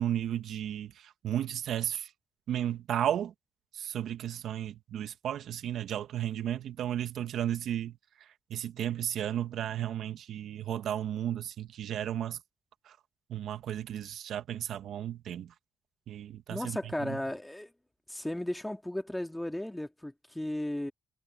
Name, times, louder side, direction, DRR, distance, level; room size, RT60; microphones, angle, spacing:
voice 1, 0.0-2.1 2.5-3.3 3.7-12.4 12.8-13.0 13.3-15.5 16.1-17.2, right 10 dB, 70° right, 1.4 m, -34 dB
voice 2, 16.5-17.7 18.1-20.9, left 1 dB, 5° left, 2.7 m, -35 dB
cardioid pair, 90°, 0 cm